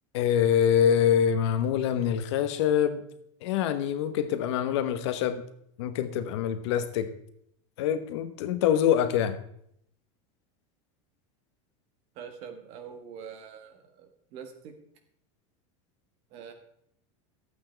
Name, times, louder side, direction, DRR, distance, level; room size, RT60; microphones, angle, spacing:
voice 1, 0.1-3.0 3.4-5.4 5.8-7.1 7.8-9.4, left 9 dB, 65° left, 11 dB, 1.0 m, -25 dB
voice 2, 12.1-14.7 16.3-16.5, right 7 dB, 40° right, 6 dB, 1.6 m, -44 dB
13.0 x 8.6 x 4.5 m, 0.71 s
supercardioid pair, 175°, 16 cm